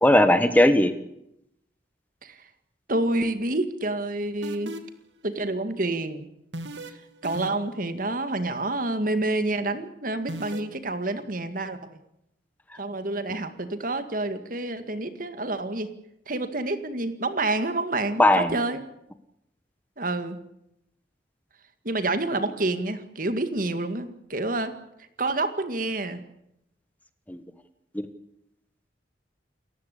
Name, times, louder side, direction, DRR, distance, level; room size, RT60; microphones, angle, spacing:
voice 1, 0.0-0.9 18.2-18.6 27.3-27.4, left 1 dB, 10° left, 10 dB, 1.2 m, -18 dB
voice 2, 2.9-4.7 5.2-6.3 6.9-12.0 12.8-15.9 16.3-18.8 20.0-20.4 21.8-24.8 25.2-26.2, right 2 dB, 50° right, 9 dB, 2.1 m, -28 dB
sound 1, 4.4-5.0 6.5-6.9 7.2-7.8 10.3-10.6, right 1 dB, 85° right, 2.6 m, -36 dB
29.0 x 15.0 x 8.5 m, 0.80 s
head